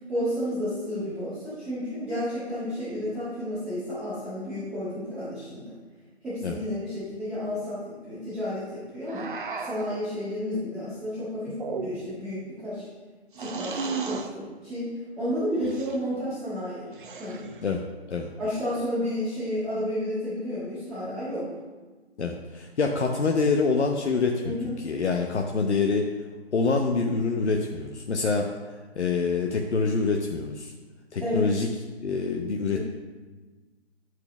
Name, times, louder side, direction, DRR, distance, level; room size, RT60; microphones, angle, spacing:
voice 1, 0.1-5.7 6.2-9.3 9.6-12.9 13.4-16.9 17.2-17.4 18.4-21.5 24.4-24.7 31.2-31.5 32.7-32.8, left 1 dB, 5° right, -16 dB, 1.7 m, -31 dB
sound 1, 9.1-10.0 11.5-12.2 13.3-14.3 15.6-16.0 16.9-17.6, right 5 dB, 50° right, 0.7 m, -34 dB
voice 2, 22.2-26.1 26.5-28.5 29.0-30.7 31.1-31.7 32.0-32.8, left 4 dB, 85° left, 1 dB, 0.9 m, -26 dB
8.2 x 4.8 x 5.9 m, 1.3 s
hypercardioid pair, 165°, 33 cm